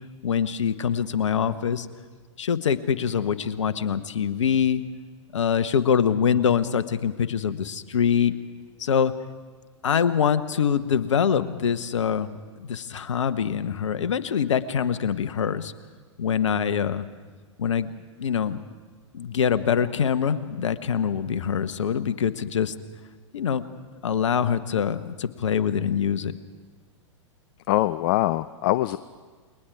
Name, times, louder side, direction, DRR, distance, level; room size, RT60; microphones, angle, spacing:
voice 1, 0.2-1.9 2.4-4.8 5.3-8.3 8.8-9.2 9.8-15.7 16.2-17.1 17.6-17.9 18.2-18.6 19.1-22.7 23.3-23.7 24.0-26.3, left 7 dB, 70° left, 13 dB, 1.1 m, -24 dB
voice 2, 27.7-29.0, left 15 dB, 45° left, 15 dB, 0.5 m, -23 dB
28.5 x 21.5 x 4.8 m, 1.5 s
figure-of-eight pair, 105°, 16 cm